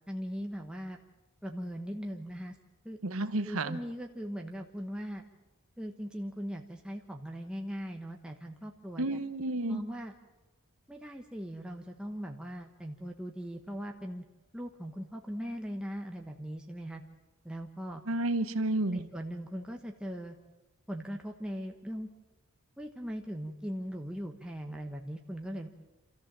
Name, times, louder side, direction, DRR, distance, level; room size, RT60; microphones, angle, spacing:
voice 1, 0.1-1.0 1.4-2.5 2.8-3.0 3.4-5.2 5.8-9.2 9.7-10.1 10.9-14.2 14.5-17.0 17.4-18.0 18.9-20.3 20.9-22.1 22.8-25.7, equal, 5° right, 1 dB, 1.0 m, -39 dB
voice 2, 3.0-3.8 9.0-9.8 18.1-19.1, right 2 dB, 70° right, 11 dB, 1.1 m, -31 dB
27.0 x 14.0 x 7.4 m, 1.1 s
head